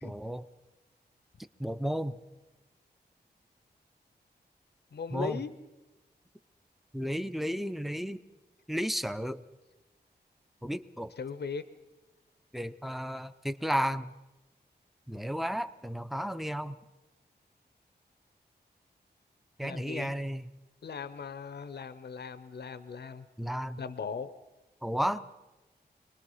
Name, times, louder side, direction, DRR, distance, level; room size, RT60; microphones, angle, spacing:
voice 1, 0.0-0.5 1.6-2.2 5.1-5.4 6.9-8.2 8.7-9.4 10.6-11.1 12.5-14.1 15.1-16.8 19.6-20.5 23.4-23.8 24.8-25.3, equal, ahead, 13 dB, 0.6 m, -33 dB
voice 2, 4.9-5.5 11.2-11.6 19.6-20.1 20.8-23.3 23.8-24.3, left 5 dB, 70° left, 13 dB, 0.9 m, -38 dB
25.5 x 20.0 x 5.6 m, 1.1 s
wide cardioid pair, 140°, 17 cm